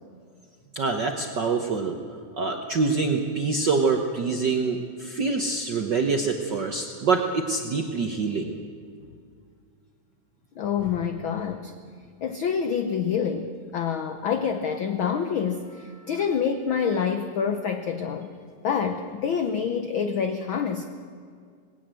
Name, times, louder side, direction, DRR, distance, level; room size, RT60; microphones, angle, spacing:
voice 1, 0.7-2.0 2.4-8.5, right 4 dB, 65° right, 4 dB, 1.1 m, -25 dB
voice 2, 10.6-11.7 12.2-18.3 18.6-20.8, left 7 dB, 75° left, 8 dB, 1.1 m, -27 dB
19.5 x 18.0 x 7.6 m, 2.2 s
omnidirectional pair, 3.4 m